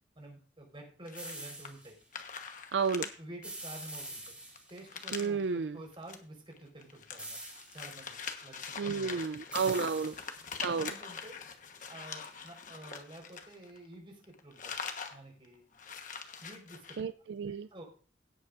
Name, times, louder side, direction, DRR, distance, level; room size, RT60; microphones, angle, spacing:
voice 1, 0.1-2.0 3.2-4.4 4.7-7.4 7.7-9.2 9.6-9.7 10.0-10.2 10.6-11.4 11.9-14.8 15.1-15.6 16.4-17.0 17.4-17.8, right 1 dB, 30° right, 1 dB, 4.5 m, -50 dB
sound 1, 1.1-1.9 2.1-3.1 3.4-3.5 3.8-5.4 5.9-6.2 6.5-13.9 14.2-15.2 15.4-15.5 15.7-17.0, left 6 dB, 45° left, 1.2 m, -43 dB
sound 2, 1.1-1.9 3.4-4.9 7.2-8.0 9.5-10.6, right 2 dB, 5° right, 5.3 m, -45 dB
voice 2, 2.7-3.1 5.1-5.8 8.8-10.1 10.6-10.9 17.0-17.7, right 5 dB, 75° right, 12 dB, 0.4 m, -32 dB
17.0 x 8.4 x 2.6 m, 0.39 s
head